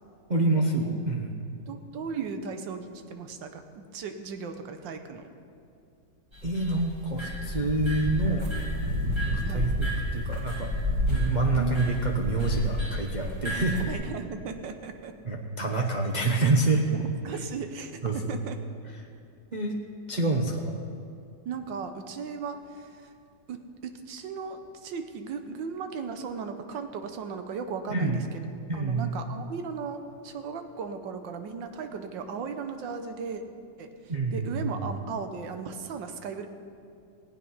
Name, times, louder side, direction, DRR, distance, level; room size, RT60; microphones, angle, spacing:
voice 1, 0.3-1.4 6.4-8.5 9.3-10.7 11.1-13.8 15.2-16.8 18.0-18.4 19.5-19.8 20.1-20.7 27.9-28.2 28.7-29.2 34.1-34.7, right 2 dB, 35° right, 0 dB, 0.7 m, -27 dB
voice 2, 1.7-5.3 9.4-9.7 11.6-12.2 13.8-15.1 16.9-18.6 21.5-23.1 23.5-28.5 28.7-33.4 33.8-36.5, right 5 dB, 85° right, 7 dB, 1.6 m, -37 dB
sound 1, 6.3-13.9, left 1 dB, 15° right, 2.0 m, -30 dB
18.5 x 8.4 x 5.6 m, 2.5 s
omnidirectional pair, 2.0 m